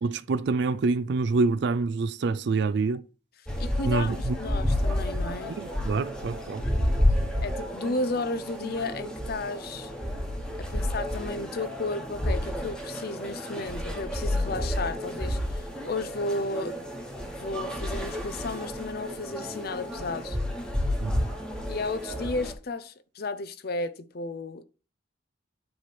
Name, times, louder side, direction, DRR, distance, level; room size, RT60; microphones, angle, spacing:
voice 1, 0.0-3.0 3.8-4.4 5.5-6.7 7.0-7.3 21.0-21.3, right 3 dB, 65° right, 0.4 m, -27 dB
sound 1, 3.5-22.5, left 1 dB, 5° left, 1.4 m, -30 dB
voice 2, 3.6-5.6 7.4-9.9 10.6-16.8 17.4-20.4 21.7-24.6, left 3 dB, 55° left, 0.6 m, -33 dB
8.7 x 3.3 x 6.1 m
head